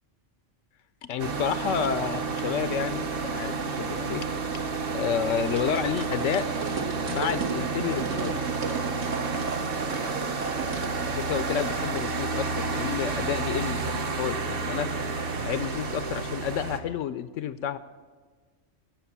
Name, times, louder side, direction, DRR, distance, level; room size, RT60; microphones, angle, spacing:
voice 1, 1.0-4.3 4.9-6.7 7.1-8.4 11.1-14.9 15.4-17.8, left 8 dB, 80° left, 13 dB, 0.9 m, -30 dB
sound 1, 1.2-16.8, right 4 dB, 50° right, 1.1 m, -30 dB
sound 2, 5.5-10.9, right 5 dB, 75° right, 1.6 m, -35 dB
18.0 x 7.4 x 7.2 m, 1.4 s
omnidirectional pair, 1.3 m